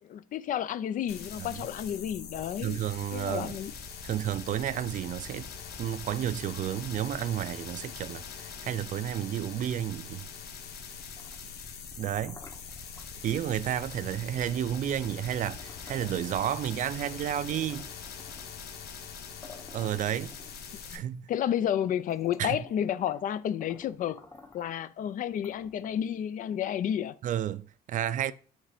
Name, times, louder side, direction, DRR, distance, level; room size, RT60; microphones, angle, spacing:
voice 1, 0.0-2.8 3.1-3.7 20.9-21.0 21.3-24.2 24.5-27.2, left 10 dB, 55° left, 0.4 m, -31 dB
sound 1, 1.1-21.0, left 6 dB, 70° left, 1.1 m, -43 dB
voice 2, 2.6-3.6 4.0-5.5 5.8-10.3 12.0-12.4 13.2-17.9 19.7-20.3 20.9-21.3 22.4-22.6 27.2-28.3, right 11 dB, 50° right, 0.4 m, -31 dB
sound 2, 11.0-13.1 14.0-14.2 14.5-16.6 16.9-18.6 19.1-19.2 19.4-20.9 21.6-21.7 22.0-23.3 23.6-24.7 25.3-26.1, left 3 dB, 20° left, 0.9 m, -53 dB
7.3 x 3.2 x 4.9 m
cardioid pair, 110°, 17 cm